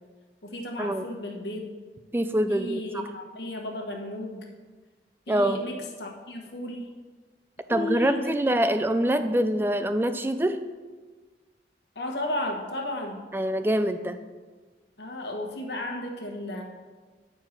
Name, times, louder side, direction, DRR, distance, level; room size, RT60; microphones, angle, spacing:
voice 1, 0.4-1.7 2.5-4.5 5.3-6.9 7.7-8.4 11.9-13.2 15.0-16.6, left 1 dB, 75° left, 2 dB, 1.3 m, -34 dB
voice 2, 2.1-3.0 5.3-5.6 7.7-10.6 13.3-14.2, right 1 dB, 10° right, 9 dB, 0.4 m, -25 dB
9.5 x 4.6 x 5.9 m, 1.4 s
head